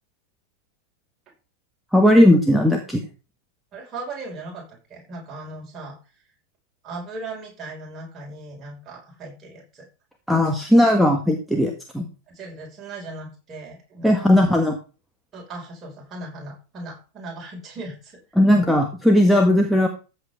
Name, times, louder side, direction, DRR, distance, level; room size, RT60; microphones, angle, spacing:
voice 1, 1.9-3.0 10.3-12.1 14.0-14.8 18.4-19.9, left 1 dB, ahead, 3 dB, 1.6 m, -17 dB
voice 2, 3.7-6.0 6.8-9.9 12.3-14.7 15.3-18.2, right 2 dB, 25° right, -2 dB, 5.5 m, -38 dB
14.5 x 7.8 x 3.7 m, 0.34 s
figure-of-eight pair, 90°, 0 cm